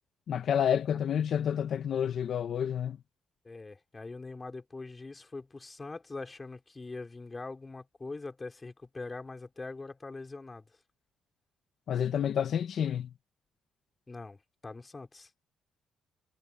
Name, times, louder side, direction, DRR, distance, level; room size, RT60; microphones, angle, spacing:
voice 1, 0.3-3.0 11.9-13.1, left 9 dB, 65° left, 1.5 m, -29 dB
voice 2, 3.4-10.7 14.1-15.3, left 3 dB, 25° left, 3.8 m, -43 dB
cardioid pair, 90°, 0 cm